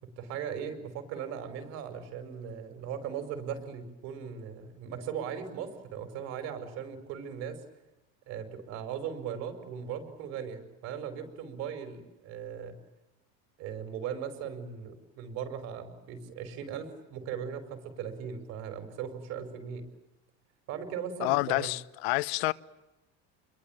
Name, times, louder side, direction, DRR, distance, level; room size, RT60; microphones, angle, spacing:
voice 1, 0.0-7.6 8.3-12.8 13.6-19.8 20.7-21.7, right 8 dB, 55° right, 5.5 m, -38 dB
voice 2, 21.2-22.5, left 22 dB, 90° left, 1.1 m, -28 dB
29.0 x 22.5 x 8.9 m
cardioid pair, 160°, 31 cm